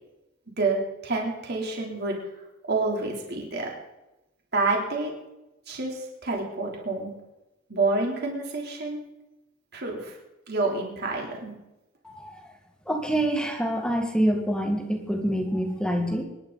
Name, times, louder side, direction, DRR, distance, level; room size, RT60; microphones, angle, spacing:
voice 1, 0.6-2.2 2.7-3.7 4.5-5.1 5.7-7.1 7.7-9.0 9.7-10.2 10.5-11.5, right 3 dB, 55° right, -1 dB, 3.6 m, -28 dB
voice 2, 12.0-12.4 12.9-16.2, right 1 dB, 5° left, 2 dB, 2.1 m, -26 dB
25.5 x 11.5 x 4.1 m, 0.95 s
head